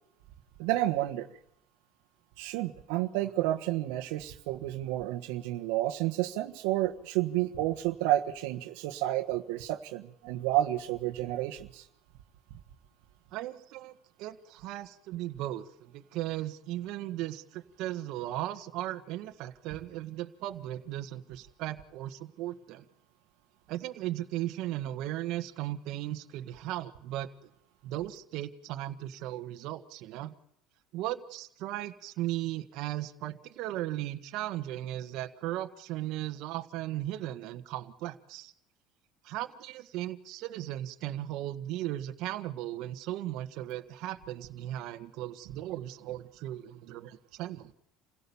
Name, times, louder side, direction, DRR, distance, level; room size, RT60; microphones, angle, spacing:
voice 1, 0.6-1.3 2.4-11.8, right 15 dB, 85° right, 5 dB, 1.3 m, -30 dB
voice 2, 13.3-22.8 23.7-27.3 27.8-30.3 30.9-38.5 39.2-47.7, right 14 dB, 65° right, 6 dB, 1.4 m, -37 dB
28.0 x 16.5 x 7.1 m, 0.76 s
cardioid pair, 130°, 0 cm